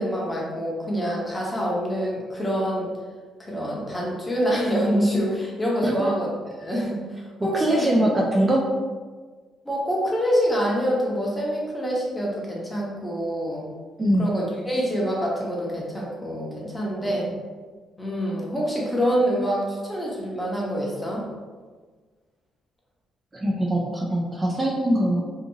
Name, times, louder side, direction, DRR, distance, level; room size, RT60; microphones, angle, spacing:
voice 1, 0.0-2.9 3.4-6.3 6.6-7.9 9.6-13.7 14.2-17.3 18.0-21.3, equal, 15° left, -4 dB, 0.8 m, -26 dB
voice 2, 7.5-8.7 14.0-14.3 23.3-25.3, right 1 dB, 25° right, -2 dB, 0.4 m, -22 dB
2.7 x 2.5 x 2.6 m, 1.4 s
cardioid pair, 90°, 0 cm